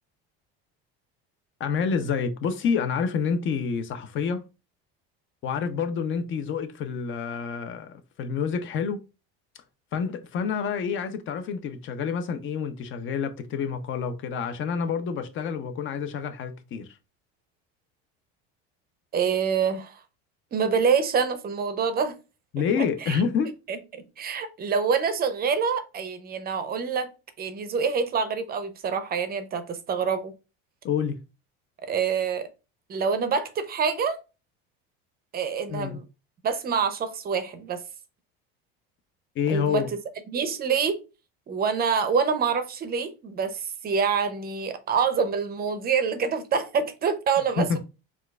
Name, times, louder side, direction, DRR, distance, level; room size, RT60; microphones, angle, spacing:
voice 1, 1.6-4.4 5.4-9.0 9.9-16.9 22.5-23.5 30.8-31.2 35.7-36.0 39.4-39.9 47.6-47.8, left 6 dB, 40° left, 0.6 m, -28 dB
voice 2, 19.1-20.0 20.5-22.2 22.8-23.2 23.7-27.1 27.4-30.3 31.8-32.5 32.9-34.2 35.3-36.0 36.4-37.8 39.5-39.8 40.3-41.0 41.5-47.8, right 6 dB, 30° right, 0.5 m, -26 dB
4.4 x 2.4 x 2.2 m
supercardioid pair, 115°, 30 cm